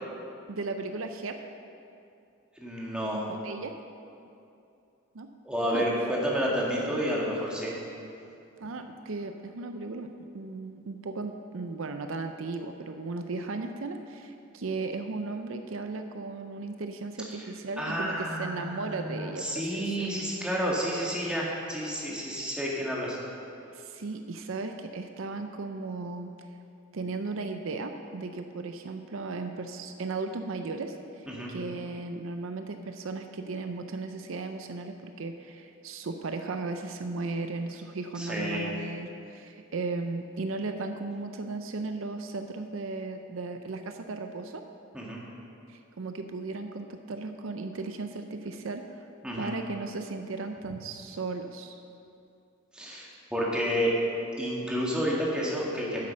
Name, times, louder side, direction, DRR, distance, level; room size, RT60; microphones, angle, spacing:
voice 1, 0.5-1.4 3.2-3.8 5.1-5.3 5.7-5.9 8.6-20.1 23.7-26.3 26.9-44.7 45.7-49.1 49.3-51.8, right 3 dB, 70° right, 7 dB, 0.5 m, -36 dB
voice 2, 2.6-3.3 5.5-7.7 17.8-23.2 31.3-31.5 38.2-38.7 44.9-45.2 49.2-49.5 52.7-53.9 54.4-56.0, equal, 5° right, -5 dB, 1.8 m, -30 dB
9.9 x 7.5 x 6.3 m, 2.6 s
head